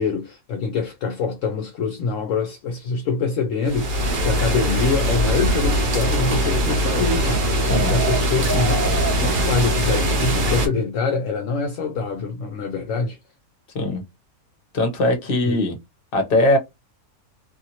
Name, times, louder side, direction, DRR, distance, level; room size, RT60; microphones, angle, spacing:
voice 1, 0.0-8.8 9.2-13.2 15.4-15.7, left 4 dB, 70° left, 0.9 m, -25 dB
sound 1, 3.6-10.7, equal, 45° right, 0.8 m, -21 dB
voice 2, 14.7-15.8 16.1-16.6, left 1 dB, 45° left, 1.0 m, -20 dB
2.7 x 2.7 x 2.8 m
omnidirectional pair, 1.6 m